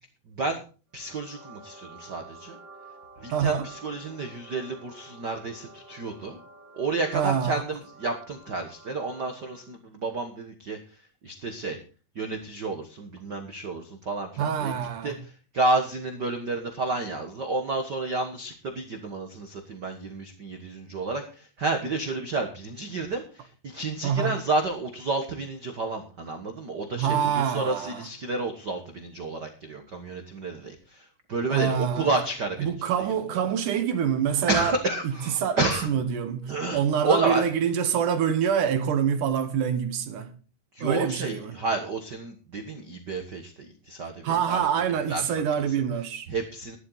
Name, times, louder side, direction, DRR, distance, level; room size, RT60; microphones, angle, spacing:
sound 1, 0.9-9.8, right 3 dB, 35° right, 2.8 m, -50 dB
voice 1, 0.9-2.6 3.2-6.4 6.7-10.8 11.2-11.8 12.1-14.7 15.0-32.7 33.0-33.1 34.5-35.9 36.5-37.4 40.7-43.5 43.9-44.6 45.1-45.2 46.3-46.8, right 3 dB, 85° right, 0.9 m, -30 dB
voice 2, 3.3-3.7 7.1-7.6 14.4-15.2 24.0-24.4 27.0-28.1 31.5-32.1 32.6-34.8 35.0-35.6 35.9-40.3 40.8-41.6 44.2-46.3, right 8 dB, 70° right, 2.4 m, -26 dB
13.0 x 11.5 x 4.0 m
omnidirectional pair, 4.3 m